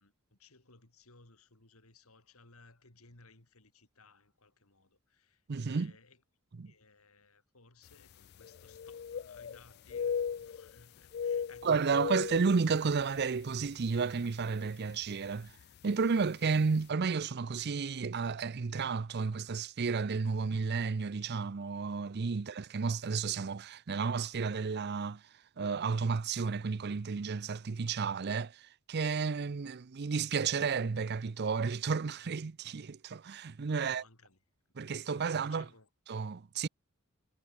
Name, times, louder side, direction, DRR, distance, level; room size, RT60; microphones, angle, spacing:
voice 1, 0.0-6.2 6.6-12.2 22.3-22.5 33.7-34.4 35.0-35.9, left 3 dB, 75° left, 4.2 m, -61 dB
voice 2, 5.5-5.9 6.6-6.7 11.6-15.5 15.8-25.2 25.6-34.0 34.8-35.7 36.1-36.7, right 5 dB, 50° right, 0.5 m, -32 dB
sound 1, 7.9-8.0 8.3-9.6 9.9-10.8 11.0-13.2 13.6-13.8 14.4-14.7 15.8-15.9 16.2-16.3, left 7 dB, 45° left, 0.3 m, -37 dB
head